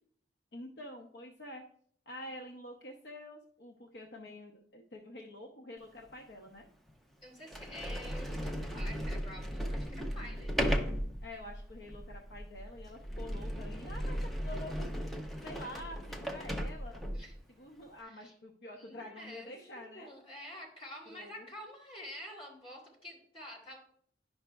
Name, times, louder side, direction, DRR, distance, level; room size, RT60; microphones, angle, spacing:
voice 1, 0.5-1.6 2.1-6.7 11.2-14.2 14.4-14.9 15.4-17.0 17.6-20.1 21.1-21.5, left 1 dB, 65° left, 2 dB, 0.8 m, -47 dB
Sliding door, 6.0-6.1 6.9-7.0 7.4-17.4, equal, ahead, 0.6 m, -36 dB
voice 2, 7.2-10.6 17.1-17.3 18.0-18.3 18.7-23.8, equal, 30° left, -3 dB, 2.9 m, -48 dB
11.0 x 5.5 x 2.3 m, 0.62 s
head